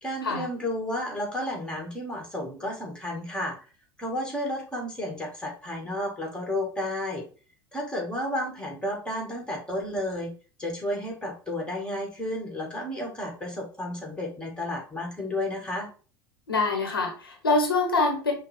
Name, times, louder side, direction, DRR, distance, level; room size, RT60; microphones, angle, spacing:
voice 1, 0.0-3.6 4.0-7.3 7.7-10.3 10.6-15.9, left 1 dB, 5° left, 1 dB, 1.9 m, -32 dB
voice 2, 16.5-18.3, left 3 dB, 90° left, 2 dB, 1.0 m, -25 dB
5.6 x 2.3 x 3.5 m, 0.37 s
figure-of-eight pair, 75°, 12 cm